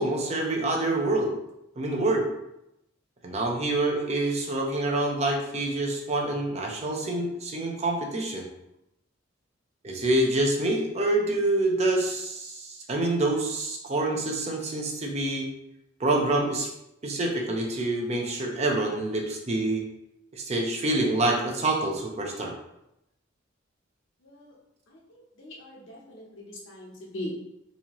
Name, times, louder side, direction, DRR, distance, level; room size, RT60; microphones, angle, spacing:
voice 1, 0.0-1.3 1.8-2.2 3.2-8.5 9.8-15.5 16.0-16.7 17.0-19.8 20.3-22.5, right 2 dB, 35° right, 1 dB, 0.6 m, -26 dB
voice 2, 25.4-27.3, left 1 dB, 80° left, -3 dB, 1.0 m, -40 dB
4.0 x 2.8 x 2.9 m, 0.85 s
head